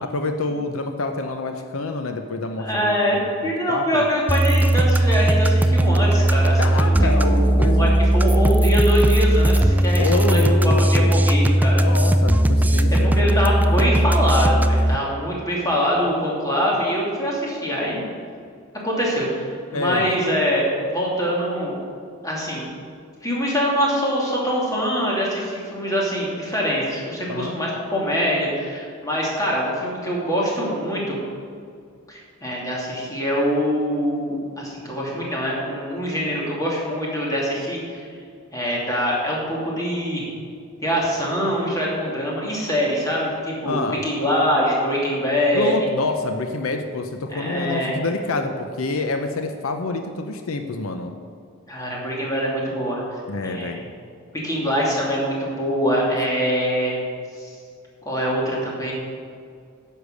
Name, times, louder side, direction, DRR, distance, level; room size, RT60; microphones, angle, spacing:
voice 1, 0.0-3.0 3.7-4.0 6.6-8.0 9.9-11.2 11.8-13.1 19.7-20.1 27.3-27.6 43.7-44.0 45.5-51.1 53.3-53.8, left 3 dB, 85° left, 6 dB, 0.7 m, -27 dB
voice 2, 2.6-11.8 12.9-18.0 18.8-21.8 22.2-22.7 23.2-31.2 32.1-38.1 38.5-40.3 40.8-45.7 47.3-48.0 51.7-53.8 54.3-57.0 57.4-57.6 58.0-58.9, equal, 15° left, -4 dB, 2.5 m, -24 dB
sound 1, 4.3-15.0, right 1 dB, 10° right, 0.3 m, -17 dB
10.0 x 6.7 x 6.6 m, 2.2 s
head